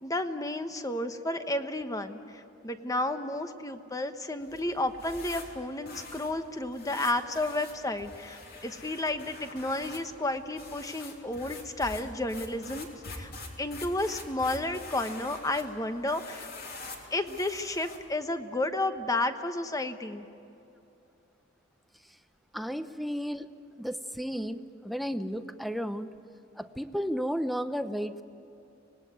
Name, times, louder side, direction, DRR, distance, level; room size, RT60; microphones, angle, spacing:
voice 1, 0.0-2.2 2.6-12.9 13.1-13.3 13.6-16.5 17.1-20.2, left 2 dB, 15° left, 8 dB, 1.1 m, -32 dB
sound 1, 4.4-18.2, left 2 dB, 50° left, 3.3 m, -45 dB
voice 2, 22.5-23.5 23.8-26.1 26.6-28.2, equal, ahead, 10 dB, 0.8 m, -33 dB
25.0 x 19.5 x 9.5 m, 2.8 s
head